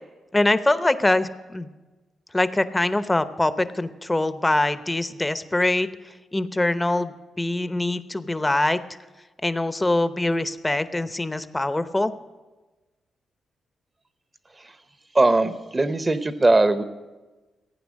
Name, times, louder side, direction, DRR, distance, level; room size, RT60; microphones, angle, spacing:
voice 1, 0.3-1.7 2.3-5.9 6.3-8.8 9.4-12.1, left 2 dB, 20° left, 13 dB, 0.7 m, -23 dB
voice 2, 15.1-16.8, right 2 dB, 30° right, 11 dB, 0.9 m, -19 dB
15.5 x 9.1 x 6.4 m, 1.2 s
supercardioid pair, 60°, 0 cm